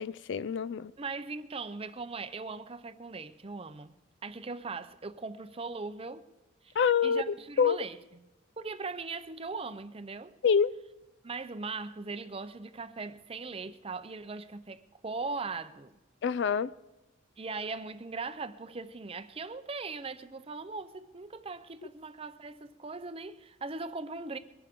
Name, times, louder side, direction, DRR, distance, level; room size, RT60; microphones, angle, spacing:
voice 1, 0.0-0.9 6.8-7.8 10.4-10.7 16.2-16.7, left 6 dB, 60° left, 0.4 m, -26 dB
voice 2, 1.0-3.9 4.2-6.2 6.6-6.8 7.0-8.0 8.6-10.3 11.2-15.9 17.4-24.4, right 4 dB, 30° right, 0.6 m, -39 dB
22.5 x 11.5 x 3.6 m
head